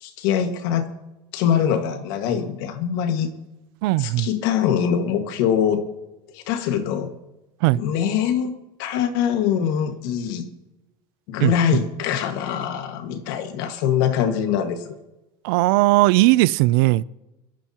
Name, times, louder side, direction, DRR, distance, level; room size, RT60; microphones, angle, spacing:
voice 1, 0.0-0.9 1.3-3.3 4.0-5.8 6.3-7.1 7.7-10.5 11.3-14.8, left 8 dB, 75° left, 1.8 m, -23 dB
voice 2, 3.8-4.3 7.6-7.8 11.4-11.8 15.4-17.0, right 19 dB, 75° right, 0.4 m, -18 dB
23.0 x 13.5 x 2.9 m
cardioid pair, 140°, 12 cm